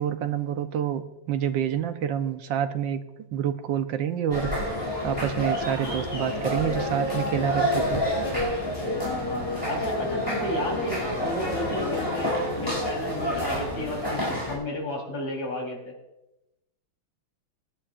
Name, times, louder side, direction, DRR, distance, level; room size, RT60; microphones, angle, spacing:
voice 1, 0.0-3.0 3.3-8.0, right 9 dB, 70° right, 9 dB, 1.5 m, -28 dB
sound 1, 4.3-14.5, left 1 dB, 10° left, 4.6 m, -28 dB
voice 2, 9.0-15.9, left 1 dB, 70° left, -1 dB, 4.5 m, -32 dB
23.0 x 11.5 x 2.5 m, 0.93 s
omnidirectional pair, 2.2 m